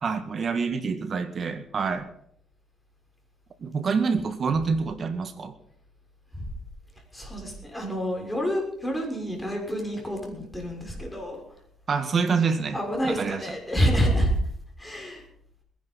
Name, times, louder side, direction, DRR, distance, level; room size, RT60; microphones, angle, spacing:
voice 1, 0.0-2.1 3.6-5.5 11.9-12.8 13.0-13.5, right 5 dB, 45° right, 9 dB, 1.9 m, -26 dB
voice 2, 7.1-11.4 12.7-14.3 14.8-15.2, equal, 10° left, 0 dB, 6.5 m, -28 dB
21.5 x 10.5 x 5.6 m, 0.69 s
cardioid pair, 90°, 0 cm